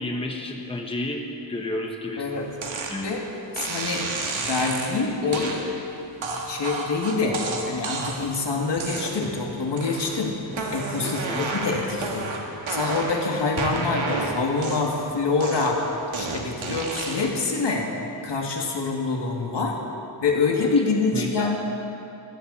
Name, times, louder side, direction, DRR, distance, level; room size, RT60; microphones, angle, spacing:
voice 1, 0.0-2.3 2.7-3.2 11.0-11.4 21.1-21.6, left 1 dB, 10° left, 2 dB, 1.3 m, -31 dB
voice 2, 2.2-2.5 3.0-3.2 3.6-5.6 6.5-10.3 10.7-12.4 12.7-17.9 18.2-19.8 20.2-21.6, left 3 dB, 60° left, 0 dB, 2.5 m, -26 dB
sound 1, 2.6-3.0 3.6-4.9 5.3-5.6 6.2-8.3 8.8-9.4 9.8-10.2 10.5-13.2 13.6-15.0 15.4-17.4, right 3 dB, 75° right, 2.1 m, -31 dB
21.0 x 15.0 x 4.3 m, 2.9 s
wide cardioid pair, 95°, 47 cm